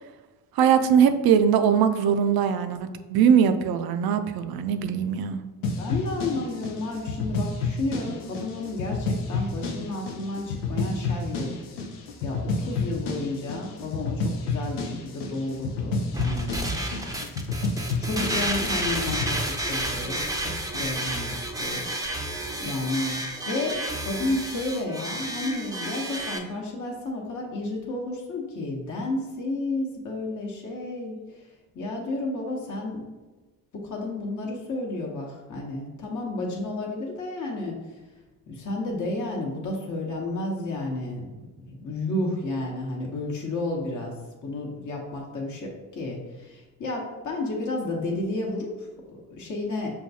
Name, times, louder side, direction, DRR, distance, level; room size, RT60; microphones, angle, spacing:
voice 1, 0.5-5.4, right 7 dB, 55° right, 9 dB, 0.5 m, -21 dB
sound 1, 5.6-19.3, left 3 dB, 85° left, 0.5 m, -30 dB
voice 2, 5.8-11.5 12.2-17.2 18.0-21.9 22.6-23.2 23.4-31.4 31.7-33.0 33.7-37.9 38.5-41.3 41.7-44.1 44.4-49.9, left 2 dB, 40° left, -1 dB, 1.0 m, -32 dB
sound 2, 16.1-26.4, right 1 dB, 10° right, 0.6 m, -31 dB
5.6 x 2.3 x 2.7 m, 1.2 s
hypercardioid pair, 40°, 45 cm